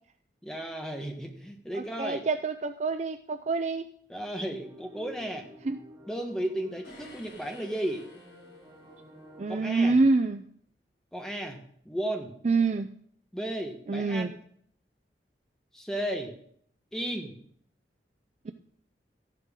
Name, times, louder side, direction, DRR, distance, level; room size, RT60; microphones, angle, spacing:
voice 1, 0.4-2.2 4.1-5.5 6.1-8.0 9.5-10.0 11.1-11.6 11.8-12.3 13.3-14.3 15.7-16.3 16.9-17.4 18.5-18.6, right 1 dB, 5° left, 2 dB, 1.5 m, -34 dB
voice 2, 1.7-3.8 5.7-5.8 9.4-10.4 12.4-12.9 13.9-14.3 18.5-18.6, right 3 dB, 40° right, 9 dB, 0.4 m, -26 dB
sound 1, 4.6-9.9, equal, 15° right, 2.9 m, -52 dB
sound 2, 6.8-9.1, left 2 dB, 75° left, 6.5 m, -53 dB
13.5 x 11.5 x 3.8 m, 0.63 s
head